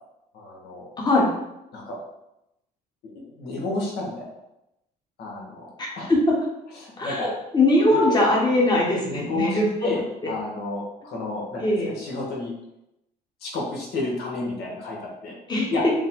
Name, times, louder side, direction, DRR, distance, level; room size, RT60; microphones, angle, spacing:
voice 1, 0.3-0.9 1.7-2.0 3.0-4.3 5.2-6.1 6.7-7.3 7.9-8.0 9.0-12.5 13.4-15.4 15.7-15.8, left 2 dB, 70° left, -3 dB, 1.3 m, -31 dB
voice 2, 1.0-1.3 7.0-7.2 7.5-9.9 11.6-11.9 15.5-15.7, left 1 dB, 25° left, -3 dB, 1.1 m, -20 dB
5.3 x 2.2 x 3.6 m, 0.87 s
cardioid pair, 110°, 17 cm